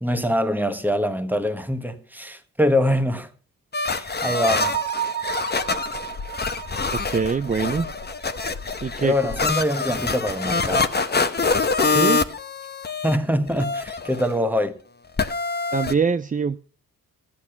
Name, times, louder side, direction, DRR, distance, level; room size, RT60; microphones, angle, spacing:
voice 1, 0.0-3.3 3.9-4.8 9.0-10.9 11.8-12.0 13.0-14.8, equal, 5° right, 1.4 m, -24 dB
sound 1, 3.7-13.2 13.5-14.3 15.2-15.9, left 4 dB, 30° left, 1.0 m, -25 dB
Bell, 4.6-8.3, right 11 dB, 75° right, 1.8 m, -32 dB
sound 2, 5.6-9.6, left 5 dB, 50° left, 1.3 m, -40 dB
voice 2, 7.1-7.9 8.8-9.1 11.8-12.2 15.7-16.6, right 5 dB, 25° right, 0.5 m, -23 dB
13.5 x 8.5 x 5.8 m
cardioid pair, 75°, 36 cm